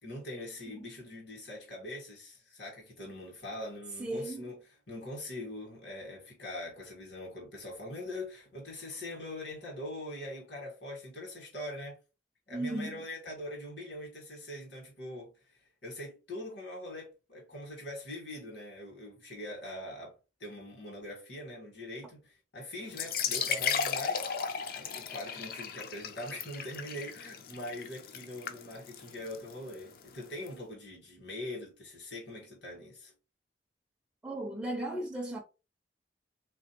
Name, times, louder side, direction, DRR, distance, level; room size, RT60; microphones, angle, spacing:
voice 1, 0.0-12.0 12.5-20.1 20.4-24.4 24.7-33.1, left 1 dB, 75° left, 1.6 m, -42 dB
voice 2, 4.0-4.4 12.5-13.0 34.2-35.4, right 1 dB, 5° right, 0.4 m, -36 dB
sound 1, 22.9-30.5, left 6 dB, 50° left, 0.4 m, -36 dB
3.6 x 2.9 x 2.9 m
head